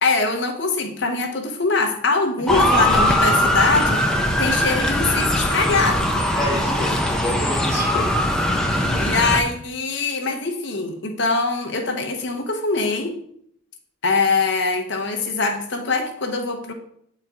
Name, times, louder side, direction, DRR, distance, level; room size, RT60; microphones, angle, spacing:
voice 1, 0.0-6.1 9.0-13.2 14.0-16.7, left 3 dB, 55° left, 4 dB, 1.0 m, -23 dB
Motor vehicle (road) / Siren, 2.5-9.4, left 1 dB, 5° left, 0.6 m, -20 dB
voice 2, 6.3-8.2, left 1 dB, 15° right, -6 dB, 2.4 m, -29 dB
8.3 x 4.4 x 3.6 m, 0.68 s
head